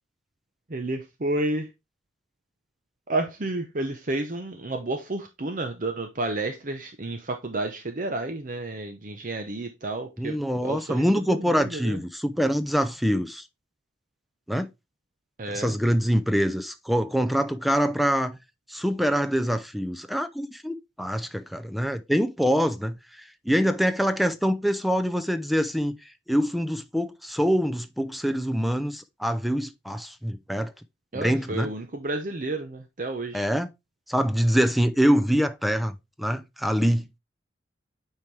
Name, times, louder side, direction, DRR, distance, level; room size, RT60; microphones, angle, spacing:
voice 1, 0.7-1.7 3.1-12.0 15.4-15.7 31.1-33.5, right 2 dB, 45° right, 0.8 m, -31 dB
voice 2, 10.2-13.4 14.5-14.7 15.5-18.4 18.7-22.9 23.5-26.0 26.3-30.7 31.1-31.7 33.3-33.7 34.1-37.1, equal, ahead, 0.5 m, -25 dB
8.8 x 4.6 x 3.2 m
head